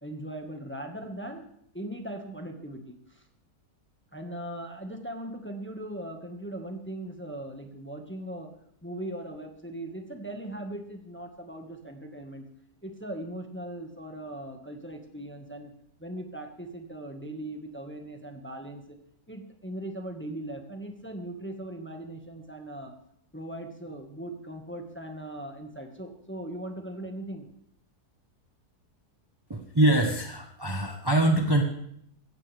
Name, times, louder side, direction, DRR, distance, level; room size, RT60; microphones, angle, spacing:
voice 1, 0.0-1.5 1.7-3.2 4.1-8.5 8.8-12.5 12.8-15.7 16.0-19.0 19.3-22.9 23.3-27.5, right 1 dB, 5° left, 3 dB, 1.5 m, -39 dB
voice 2, 29.5-31.6, right 1 dB, 15° right, 2 dB, 1.2 m, -24 dB
16.0 x 15.5 x 3.5 m, 0.69 s
omnidirectional pair, 1.8 m